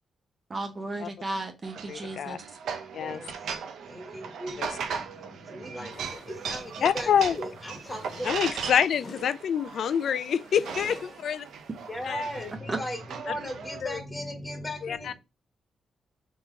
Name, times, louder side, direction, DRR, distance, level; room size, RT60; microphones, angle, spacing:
voice 1, 0.5-2.6 12.7-12.8, right 2 dB, 30° right, 0.8 m, -34 dB
sound 1, 1.6-13.8, right 6 dB, 85° right, 0.6 m, -38 dB
voice 2, 1.9-2.4 2.9-3.2 4.6-4.7 6.8-7.4 8.2-11.5 12.1-12.2 13.3-13.4 13.8-14.0 14.8-15.2, left 8 dB, 70° left, 0.3 m, -26 dB
voice 3, 3.0-3.5 3.8-8.7 11.9-15.2, equal, 10° left, 1.3 m, -38 dB
sound 2, 5.9-12.5, left 3 dB, 50° left, 1.1 m, -50 dB
3.7 x 2.9 x 4.5 m
cardioid pair, 110°, 0 cm